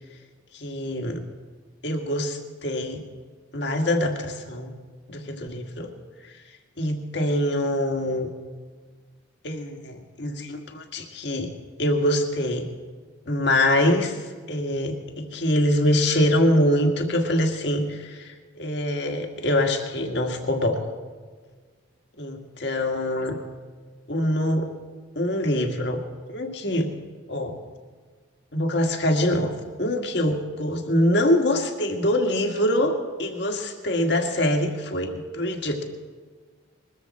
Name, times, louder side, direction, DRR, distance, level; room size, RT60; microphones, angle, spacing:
voice 1, 0.5-1.2 1.8-3.0 3.5-4.8 5.1-5.9 6.8-8.3 9.4-11.5 11.8-12.7 13.3-20.8 22.2-23.4 24.1-24.7 25.2-26.0 26.3-26.9 27.3-27.6 28.5-29.5 29.8-35.8, left 1 dB, 60° left, 4 dB, 1.8 m, -24 dB
21.5 x 14.0 x 4.2 m, 1.5 s
head